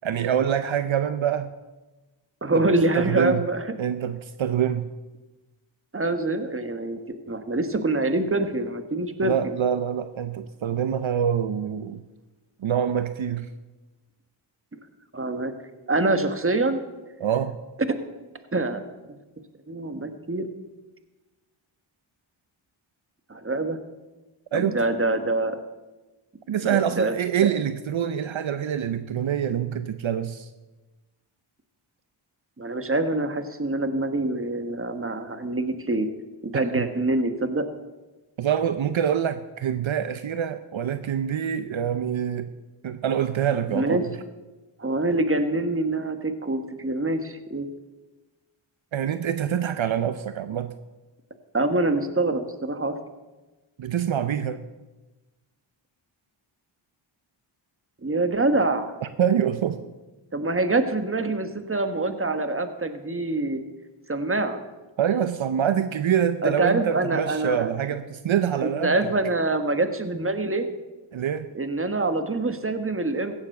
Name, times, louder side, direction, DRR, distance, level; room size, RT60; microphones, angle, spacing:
voice 1, 0.0-1.5 2.5-2.6 3.0-3.4 3.8-4.9 9.2-12.0 12.6-13.5 17.2-17.6 24.5-24.8 26.5-30.5 36.5-36.6 38.4-42.5 42.8-44.0 48.9-50.7 53.8-54.6 59.2-59.8 65.0-69.0 71.1-71.5, right 9 dB, 70° right, 11 dB, 0.7 m, -25 dB
voice 2, 2.4-3.7 5.9-7.0 7.3-9.5 15.1-15.5 15.9-16.8 17.9-18.0 18.5-18.8 19.1-19.2 19.7-20.5 23.3-23.8 24.5-25.6 26.6-27.1 27.4-27.5 32.6-36.1 36.4-37.7 43.7-44.0 44.8-47.7 51.5-53.0 58.0-58.9 60.3-63.6 64.1-64.6 66.4-67.9 68.6-70.7 71.5-73.3, right 2 dB, 25° right, 8 dB, 1.4 m, -25 dB
16.0 x 7.2 x 6.6 m, 1.2 s
cardioid pair, 50°, 49 cm